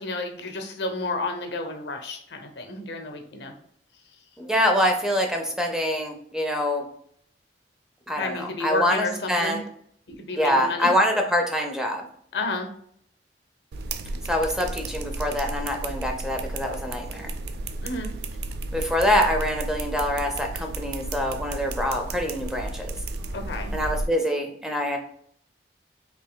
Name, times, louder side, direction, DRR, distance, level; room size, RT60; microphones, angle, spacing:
voice 1, 0.0-3.5 8.1-9.6 10.1-10.9 12.3-12.7 17.8-18.1 23.3-23.7, left 2 dB, 70° left, 5 dB, 0.7 m, -31 dB
voice 2, 4.4-6.8 8.1-9.6 10.4-12.0 14.2-17.3 18.7-22.9 23.7-25.0, equal, 5° right, 3 dB, 0.5 m, -25 dB
sound 1, 13.7-24.1, right 2 dB, 65° right, 0.4 m, -33 dB
5.2 x 2.9 x 2.2 m, 0.64 s
head